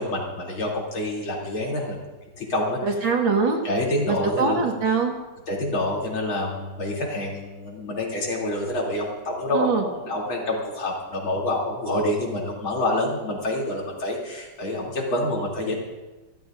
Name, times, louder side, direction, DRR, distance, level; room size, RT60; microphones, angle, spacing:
voice 1, 0.0-2.0 2.4-3.1 3.6-4.6 5.5-15.8, left 1 dB, 70° left, -3 dB, 3.9 m, -27 dB
voice 2, 2.8-3.7 4.1-5.2 9.5-9.8, right 4 dB, 65° right, 2 dB, 2.3 m, -23 dB
27.5 x 14.0 x 2.6 m, 1.2 s
omnidirectional pair, 2.4 m